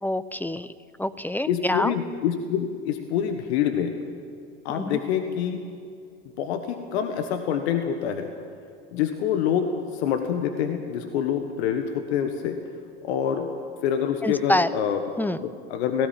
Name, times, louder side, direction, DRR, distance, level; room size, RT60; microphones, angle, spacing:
voice 1, 0.0-0.7 1.0-1.9 4.7-5.0 14.2-14.8 15.2-15.4, left 1 dB, 5° left, 14 dB, 0.7 m, -26 dB
voice 2, 1.5-3.9 4.6-5.6 6.4-8.3 8.9-12.6 13.0-13.5 13.8-15.0 15.4-16.1, left 8 dB, 75° left, 6 dB, 1.5 m, -26 dB
18.0 x 16.0 x 9.1 m, 2.4 s
hypercardioid pair, 80°, 33 cm